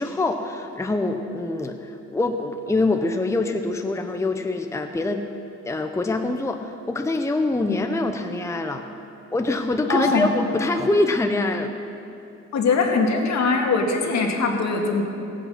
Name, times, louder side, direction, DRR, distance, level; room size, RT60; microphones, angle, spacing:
voice 1, 0.0-5.2 5.6-8.8 9.3-11.7, left 2 dB, 10° left, 5 dB, 0.7 m, -24 dB
voice 2, 9.9-10.3 12.5-15.0, left 4 dB, 65° left, 2 dB, 2.0 m, -21 dB
17.5 x 8.5 x 5.7 m, 2.7 s
cardioid pair, 90°, 30 cm